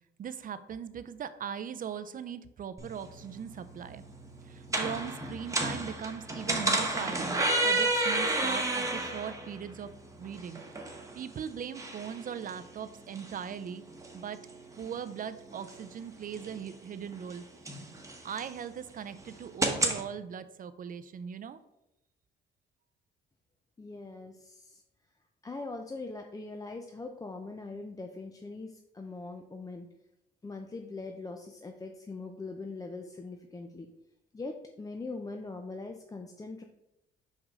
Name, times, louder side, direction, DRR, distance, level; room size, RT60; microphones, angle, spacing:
voice 1, 0.2-4.0 4.4-9.9 10.2-13.8 14.1-14.4 14.8-17.5 18.2-21.6, right 8 dB, 45° right, 12 dB, 0.5 m, -40 dB
sound 1, 2.8-20.0, right 2 dB, 15° right, 1.0 m, -33 dB
voice 2, 23.8-24.8 25.4-29.9 30.4-33.9 34.3-36.6, left 3 dB, 15° left, 4 dB, 0.5 m, -41 dB
5.3 x 4.9 x 3.6 m, 0.89 s
cardioid pair, 90°, 20 cm